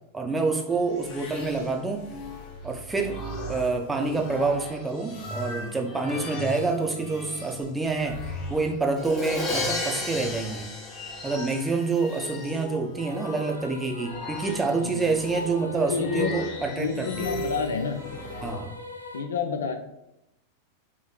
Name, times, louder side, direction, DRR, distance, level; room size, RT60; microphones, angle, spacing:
voice 1, 0.1-2.1 2.6-3.2 3.5-8.2 8.5-10.7 11.2-17.3 18.4-18.7, right 3 dB, 10° right, 3 dB, 0.6 m, -27 dB
sound 1, 0.7-18.6, left 1 dB, 35° left, 1.4 m, -38 dB
Crash cymbal, 9.0-11.9, left 2 dB, 20° left, 1.0 m, -32 dB
sound 2, 13.0-19.2, left 3 dB, 85° right, 0.5 m, -42 dB
voice 2, 14.7-15.1 15.8-16.4 16.7-18.0 19.1-19.8, left 6 dB, 70° left, 6 dB, 0.5 m, -29 dB
4.3 x 3.0 x 3.8 m, 0.87 s
figure-of-eight pair, 90°, 0 cm